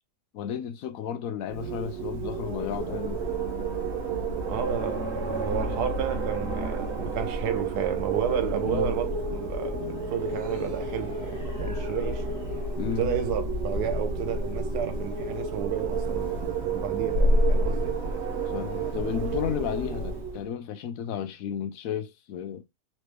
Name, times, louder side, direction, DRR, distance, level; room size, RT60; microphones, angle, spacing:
voice 1, 0.3-3.2 8.6-8.9 12.8-13.1 18.5-22.6, left 8 dB, 70° left, 0.9 m, -33 dB
Wind, 1.5-20.5, right 2 dB, 45° right, 1.1 m, -30 dB
voice 2, 4.5-12.3 13.0-18.0, right 8 dB, 70° right, 1.3 m, -32 dB
sound 1, 9.5-14.1, left 1 dB, 15° left, 0.9 m, -47 dB
4.2 x 3.1 x 3.2 m
omnidirectional pair, 1.8 m